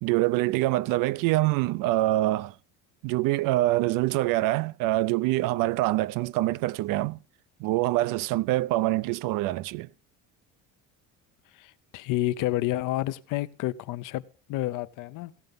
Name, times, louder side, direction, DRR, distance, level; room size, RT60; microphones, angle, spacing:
voice 1, 0.0-2.5 3.0-7.2 7.6-9.9, right 17 dB, 70° right, 0.5 m, -25 dB
voice 2, 11.5-14.2 14.5-15.3, left 16 dB, 70° left, 0.8 m, -29 dB
16.5 x 7.9 x 5.4 m
cardioid pair, 135°, 34 cm